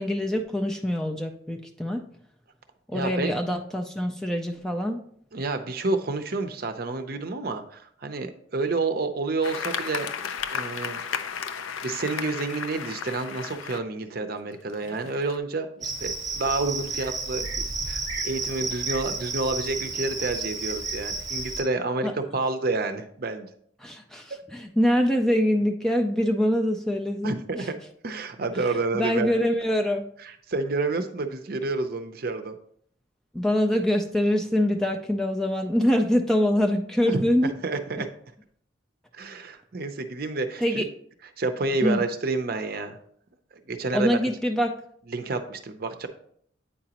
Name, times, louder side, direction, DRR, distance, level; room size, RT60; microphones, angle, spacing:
voice 1, 0.0-2.1 2.9-5.0 22.0-22.1 23.8-27.7 28.6-30.1 33.3-37.5 40.6-40.9 41.8-42.0 43.9-44.8, equal, 5° left, 3 dB, 0.3 m, -24 dB
voice 2, 2.9-3.3 5.3-10.1 10.5-11.0 11.5-17.5 17.9-23.5 24.3-24.4 27.2-27.8 28.0-29.3 30.5-32.6 37.0-38.1 39.1-40.8 41.4-43.0 43.7-44.2 45.1-46.1, right 3 dB, 50° right, 8 dB, 0.6 m, -29 dB
sound 1, 9.4-13.8 14.5-15.4, left 7 dB, 85° left, 0.5 m, -34 dB
Cricket, 15.8-21.6, right 3 dB, 20° right, 1.0 m, -32 dB
8.5 x 4.9 x 2.9 m, 0.64 s
head